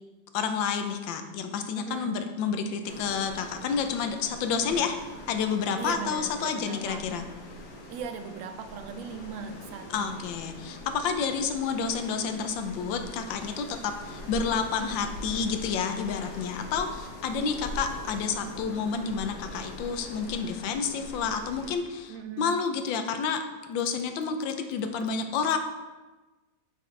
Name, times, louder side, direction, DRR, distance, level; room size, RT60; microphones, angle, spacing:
voice 1, 0.3-4.9 5.3-7.2 9.9-23.4 23.7-25.6, left 6 dB, 90° left, 7 dB, 1.4 m, -29 dB
voice 2, 1.7-2.2 4.6-4.9 5.8-7.1 7.9-10.2 22.1-22.5, right 6 dB, 85° right, 7 dB, 1.4 m, -39 dB
sound 1, 2.8-21.8, left 1 dB, 65° left, 1.5 m, -43 dB
8.4 x 5.3 x 3.2 m, 1.2 s
omnidirectional pair, 2.0 m